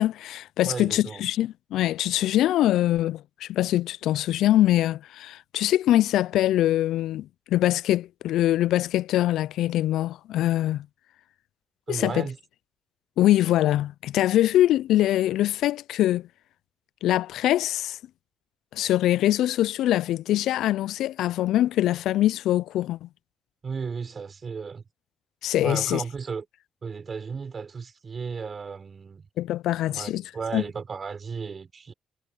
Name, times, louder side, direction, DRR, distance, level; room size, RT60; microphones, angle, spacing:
voice 1, 0.0-10.9 11.9-12.3 13.2-16.3 17.0-18.0 18.7-23.1 25.4-26.0 29.4-30.2 30.5-30.6, left 13 dB, 75° left, 0.4 m, -23 dB
voice 2, 0.6-1.2 11.9-12.4 23.6-24.8 25.6-26.5 26.8-29.3 29.9-31.9, right 5 dB, 45° right, 6.0 m, -34 dB
supercardioid pair, 55°, 0 cm